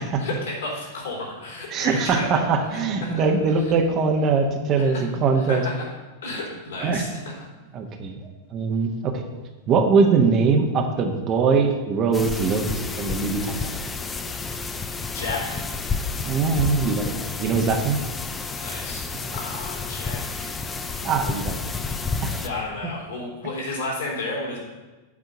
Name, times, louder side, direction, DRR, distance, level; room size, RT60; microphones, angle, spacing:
voice 1, 0.2-2.4 3.0-3.2 4.8-5.0 5.5-5.9 6.2-7.4 15.1-15.6 18.6-19.1 19.3-20.9 22.4-24.6, left 2 dB, 65° left, -3 dB, 3.5 m, -32 dB
voice 2, 1.7-5.6 6.8-7.0 7.7-9.2 9.7-12.7 13.0-13.8 16.2-18.0 19.1-19.4 21.0-21.6 22.2-22.4 22.8-22.9, right 4 dB, 35° right, 4 dB, 1.0 m, -22 dB
sound 1, 12.1-22.5, left 4 dB, 15° left, 0.6 m, -30 dB
8.5 x 5.1 x 7.3 m, 1.2 s
figure-of-eight pair, 90°, 0 cm